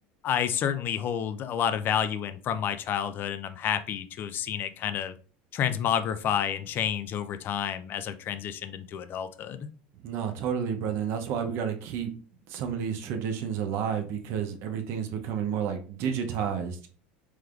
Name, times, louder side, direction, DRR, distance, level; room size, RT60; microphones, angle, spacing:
voice 1, 0.2-5.1 5.5-9.7, left 9 dB, 45° left, 12 dB, 0.4 m, -29 dB
voice 2, 10.0-12.1 12.5-16.9, right 7 dB, 55° right, 6 dB, 0.6 m, -30 dB
3.4 x 3.1 x 2.3 m, 0.39 s
supercardioid pair, 100°, 5 cm